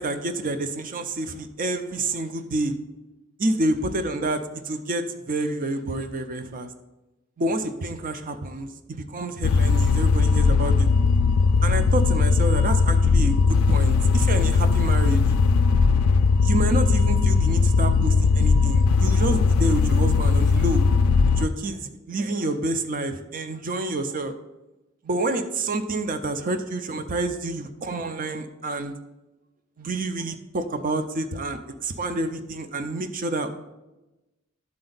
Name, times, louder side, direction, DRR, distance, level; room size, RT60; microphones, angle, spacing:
voice 1, 0.0-2.7 3.4-6.7 7.4-10.9 11.6-15.2 16.4-20.8 21.4-24.3 25.0-28.9 29.8-33.5, right 2 dB, 40° right, 9 dB, 0.6 m, -28 dB
sound 1, 9.4-21.5, left 4 dB, 90° left, 0.4 m, -19 dB
12.0 x 4.3 x 4.0 m, 1.0 s
head